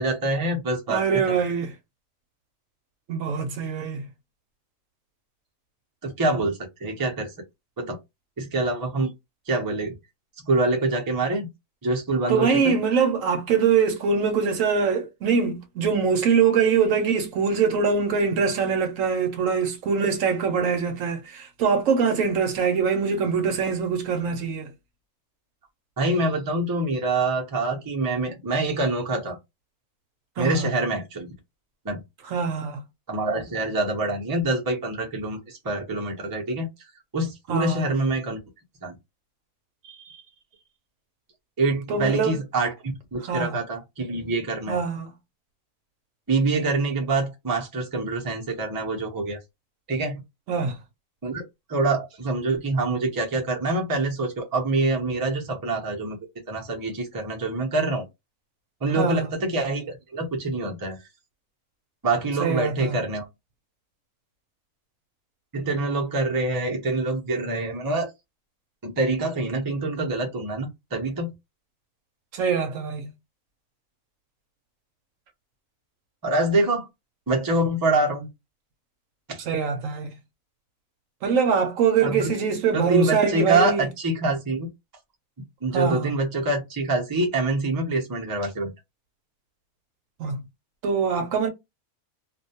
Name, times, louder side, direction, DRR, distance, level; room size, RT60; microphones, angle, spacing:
voice 1, 0.0-1.4 6.0-7.3 7.8-8.0 8.4-9.1 9.5-9.9 10.4-11.5 11.8-12.8 26.0-29.4 30.4-31.3 31.8-32.0 33.1-36.7 37.1-38.4 38.8-39.0 39.8-40.2 41.6-44.8 46.3-49.4 49.9-50.2 51.2-51.4 51.7-56.2 56.5-58.0 58.8-61.0 62.0-63.2 65.5-68.1 68.8-71.3 76.2-76.9 77.3-78.3 79.3-79.4 82.0-82.3 82.7-84.7 85.6-88.7, right 2 dB, 35° right, 0.3 m, -25 dB
voice 2, 0.9-1.7 3.1-4.1 12.3-24.7 30.4-30.7 32.2-32.8 37.5-37.9 41.9-42.4 43.3-43.6 44.7-45.1 50.5-50.7 58.9-59.3 62.4-62.9 72.3-73.1 79.5-80.1 81.2-83.9 85.7-86.1 90.2-90.4 90.8-91.5, right 6 dB, 70° right, 0.9 m, -23 dB
2.5 x 2.2 x 2.7 m
omnidirectional pair, 1.6 m